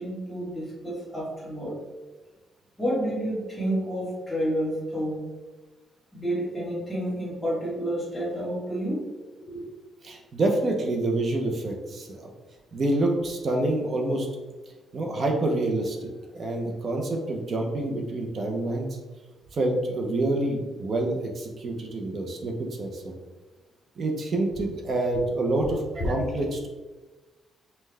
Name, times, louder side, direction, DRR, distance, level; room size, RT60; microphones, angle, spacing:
voice 1, 0.0-1.8 2.8-5.2 6.1-9.0 9.4-9.7 25.1-25.2 25.6-26.1, equal, 5° left, -8 dB, 1.3 m, -30 dB
voice 2, 10.0-12.3 12.7-14.3 14.9-16.0 16.3-18.9 19.5-23.1 24.0-26.7, right 2 dB, 40° right, 2 dB, 0.6 m, -27 dB
5.4 x 2.3 x 3.2 m, 1.2 s
cardioid pair, 145°, 0 cm